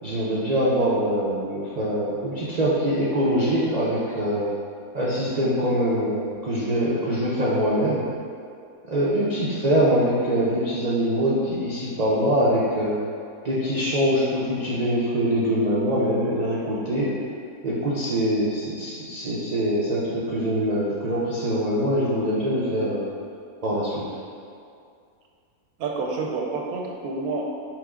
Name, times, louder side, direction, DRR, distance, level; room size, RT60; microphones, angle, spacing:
voice 1, 0.0-4.5 4.9-8.0 8.8-13.0 13.4-17.1 17.6-23.1 23.6-24.0, equal, 70° right, -8 dB, 0.4 m, -23 dB
voice 2, 25.8-27.5, right 3 dB, 90° right, 0 dB, 1.1 m, -28 dB
5.8 x 2.0 x 3.6 m, 2.4 s
omnidirectional pair, 1.5 m